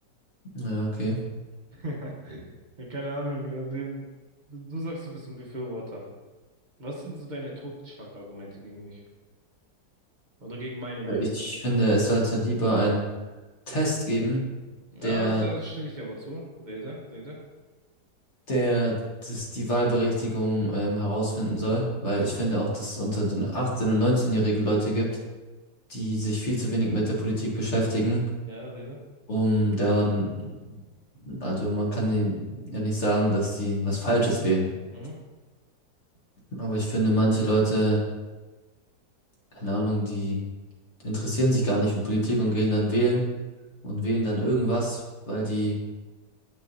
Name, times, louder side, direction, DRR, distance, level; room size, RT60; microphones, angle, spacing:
voice 1, 0.5-1.1 11.1-13.0 13.7-14.4 15.0-15.4 18.5-19.0 19.2-25.1 25.9-28.2 29.3-30.8 31.2-32.4 32.7-34.7 36.5-38.0 39.5-40.4 41.0-43.2 43.8-45.8, right 1 dB, 45° left, -3 dB, 1.4 m, -25 dB
voice 2, 1.7-2.5 2.8-4.0 4.5-6.0 6.8-9.0 10.4-11.4 11.7-11.9 14.9-17.4 28.4-29.0 34.9-35.2, right 1 dB, 35° right, -2 dB, 0.9 m, -36 dB
7.3 x 5.6 x 2.6 m, 1.2 s
omnidirectional pair, 1.9 m